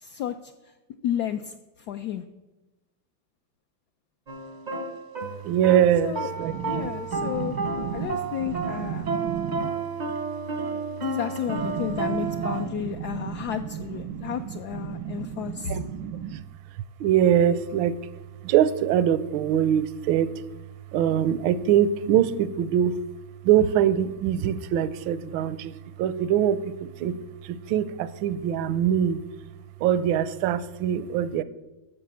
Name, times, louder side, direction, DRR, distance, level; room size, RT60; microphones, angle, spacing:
voice 1, 0.0-0.3 1.0-1.5 1.9-2.2 6.0-6.3 6.7-7.6 7.9-9.1 11.0-15.8, left 10 dB, 75° left, 7 dB, 0.9 m, -31 dB
sound 1, 4.3-12.7, right 3 dB, 45° right, 0.6 m, -32 dB
voice 2, 5.4-9.7 11.5-14.3 14.7-16.4 17.0-17.9 18.4-20.3 20.9-22.9 23.4-25.7 26.0-27.1 27.7-29.2 29.8-31.4, right 10 dB, 85° right, 16 dB, 1.4 m, -24 dB
10.0 x 6.9 x 7.3 m, 1.1 s
omnidirectional pair, 2.1 m